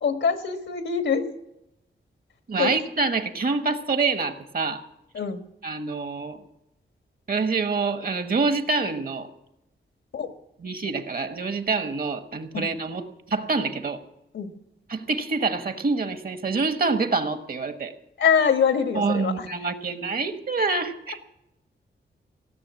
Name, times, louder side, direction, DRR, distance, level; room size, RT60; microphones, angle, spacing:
voice 1, 0.0-1.2 2.6-2.7 5.1-5.4 10.1-10.3 12.5-12.7 14.3-14.5 18.2-19.4, left 6 dB, 80° left, 8 dB, 1.5 m, -23 dB
voice 2, 2.5-4.8 5.6-6.4 7.3-9.3 10.6-14.0 14.9-17.9 18.9-21.2, right 4 dB, 50° right, 9 dB, 1.4 m, -26 dB
16.5 x 6.8 x 9.5 m, 0.87 s
cardioid pair, 80°, 19 cm